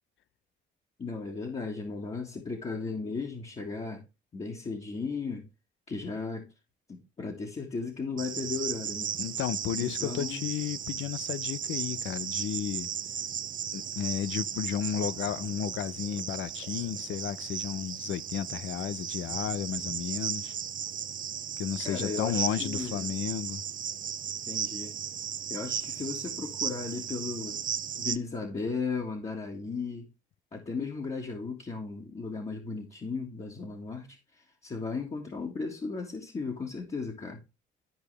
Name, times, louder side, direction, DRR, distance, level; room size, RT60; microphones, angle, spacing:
voice 1, 1.0-4.0 4.3-5.5 5.9-6.5 6.9-9.1 9.8-10.5 19.3-19.4 21.8-23.1 24.5-24.9 25.5-27.6 28.0-30.1 30.5-37.4, left 4 dB, 35° left, 1.9 m, -36 dB
Cricket, 8.2-28.2, right 9 dB, 45° right, 0.5 m, -35 dB
voice 2, 9.2-12.9 13.7-20.5 21.6-23.6, left 10 dB, 75° left, 0.6 m, -33 dB
12.0 x 4.9 x 3.4 m
cardioid pair, 90°, 20 cm